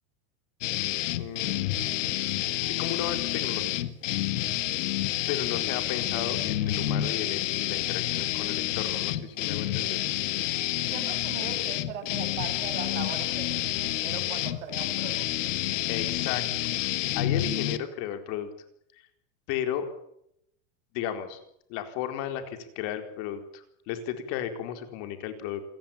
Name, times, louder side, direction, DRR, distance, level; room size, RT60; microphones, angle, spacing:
sound 1, 0.6-17.8, left 13 dB, 85° left, 2.0 m, -29 dB
voice 1, 1.1-2.0 2.6-3.7 5.3-10.0 15.9-16.7 17.2-18.5 19.5-19.9 20.9-21.4 21.7-25.6, left 10 dB, 45° left, 7 dB, 4.3 m, -34 dB
voice 2, 10.9-15.6, right 7 dB, 80° right, 8 dB, 7.3 m, -40 dB
29.0 x 17.5 x 8.8 m, 0.76 s
supercardioid pair, 165°, 36 cm